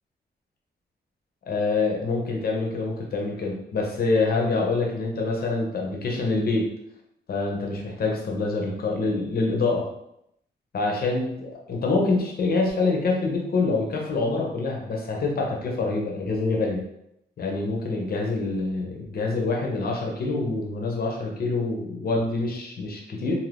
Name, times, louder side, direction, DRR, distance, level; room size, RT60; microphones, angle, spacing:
voice 1, 1.5-6.7 7.3-9.8 10.7-16.8 17.4-23.3, left 3 dB, 55° left, 0 dB, 0.7 m, -26 dB
2.6 x 2.5 x 3.3 m, 0.79 s
wide cardioid pair, 180°, 18 cm